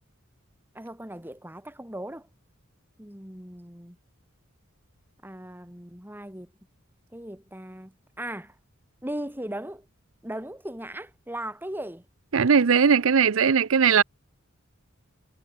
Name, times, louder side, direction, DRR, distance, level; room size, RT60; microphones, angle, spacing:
voice 1, 0.7-2.3 3.0-4.0 5.2-6.5 7.1-8.5 9.0-9.9 10.2-12.0, right 1 dB, 10° right, 4.8 m, -38 dB
voice 2, 12.3-14.0, right 6 dB, 70° right, 0.6 m, -19 dB
head